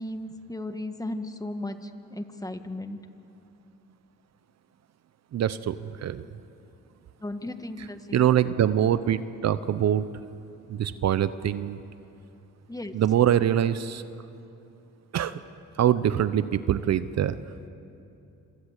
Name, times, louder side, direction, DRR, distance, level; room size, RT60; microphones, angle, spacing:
voice 1, 0.0-1.8 2.1-3.0 7.2-8.2 12.7-13.0, left 1 dB, 10° left, 7 dB, 1.8 m, -35 dB
voice 2, 5.3-6.3 7.8-10.1 10.7-11.8 12.9-14.0 15.1-15.4 15.8-17.4, right 10 dB, 60° right, 13 dB, 0.9 m, -24 dB
27.0 x 26.0 x 8.3 m, 2.7 s
cardioid pair, 90°, 30 cm